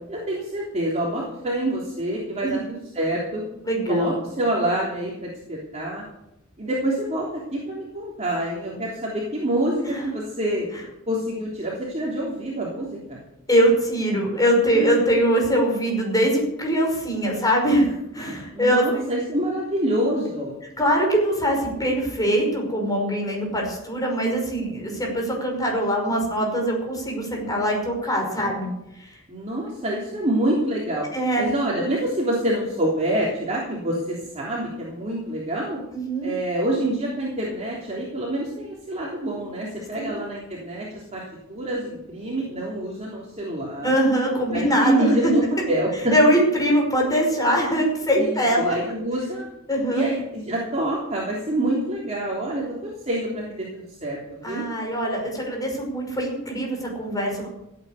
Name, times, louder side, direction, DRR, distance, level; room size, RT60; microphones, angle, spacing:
voice 1, 0.1-3.4 3.9-6.0 6.6-10.7 11.1-13.2 14.8-15.0 17.2-17.4 18.5-20.6 28.4-28.6 29.3-31.1 31.4-35.8 36.2-41.2 41.5-43.9 44.5-45.4 45.7-46.1 48.2-49.5 49.9-54.2 54.4-54.7, right 1 dB, 30° right, -4 dB, 3.3 m, -26 dB
voice 2, 2.4-2.7 3.6-4.2 9.9-10.0 13.5-19.1 20.8-29.2 31.1-31.5 35.9-36.3 40.0-40.1 43.8-45.3 46.1-48.8 49.7-50.1 54.4-57.5, equal, 20° left, 0 dB, 5.4 m, -22 dB
15.5 x 9.0 x 8.1 m, 0.84 s
head